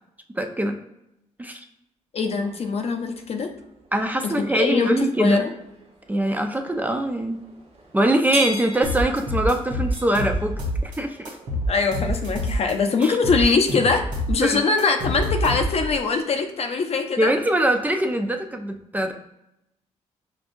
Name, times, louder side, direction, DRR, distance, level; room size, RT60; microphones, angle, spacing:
voice 1, 0.3-0.8 1.4-1.6 3.9-5.5 6.1-7.4 7.9-11.2 13.0-13.2 14.4-14.6 17.2-19.1, right 1 dB, 15° right, 5 dB, 0.4 m, -23 dB
voice 2, 2.1-3.5 4.2-5.4 11.7-17.3, left 4 dB, 55° left, 4 dB, 0.6 m, -22 dB
sound 1, 2.3-12.0, right 1 dB, 55° right, 0.8 m, -40 dB
sound 2, 8.8-11.0 11.2-12.7 13.0-16.0, equal, 85° right, 1.0 m, -26 dB
5.1 x 2.3 x 2.5 m, 0.85 s
cardioid pair, 75°, 12 cm